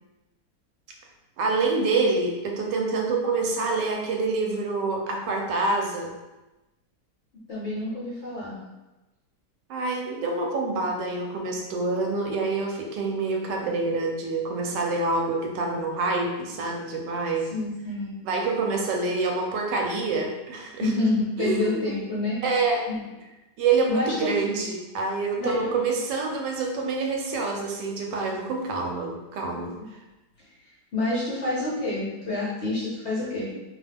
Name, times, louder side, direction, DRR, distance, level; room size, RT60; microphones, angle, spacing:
voice 1, 1.4-6.1 9.7-17.5 18.2-20.9 21.4-21.9 22.4-22.9 23.6-29.8, right 3 dB, 85° right, 1 dB, 1.2 m, -26 dB
voice 2, 7.5-8.6 17.5-18.1 20.8-22.4 22.9-23.0 23.9-24.3 25.4-25.6 30.9-33.5, left 2 dB, 50° left, -8 dB, 0.9 m, -28 dB
2.8 x 2.2 x 3.3 m, 1.0 s
omnidirectional pair, 1.8 m